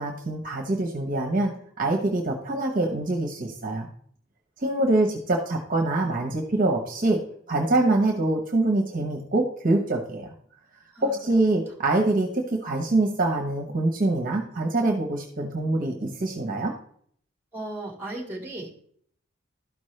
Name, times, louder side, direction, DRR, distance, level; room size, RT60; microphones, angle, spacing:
voice 1, 0.0-1.5 1.8-3.9 4.6-7.2 7.5-10.3 11.0-16.7, right 2 dB, 45° right, 2 dB, 1.0 m, -24 dB
voice 2, 10.9-11.4 17.5-18.9, right 1 dB, 10° right, 0 dB, 1.8 m, -37 dB
12.0 x 5.2 x 3.2 m, 0.62 s
head